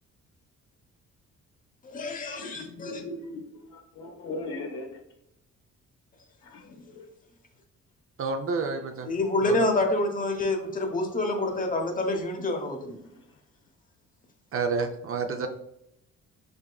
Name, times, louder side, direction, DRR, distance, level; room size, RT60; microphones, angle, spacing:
voice 1, 1.8-3.0 9.0-13.0, left 2 dB, 25° left, 4 dB, 1.0 m, -27 dB
voice 2, 2.3-3.4 4.0-4.9 6.5-7.0, left 2 dB, 80° left, -3 dB, 0.9 m, -38 dB
voice 3, 8.2-9.1 14.5-15.5, right 4 dB, 45° right, 5 dB, 0.5 m, -29 dB
5.2 x 3.5 x 2.3 m, 0.80 s
cardioid pair, 90°, 30 cm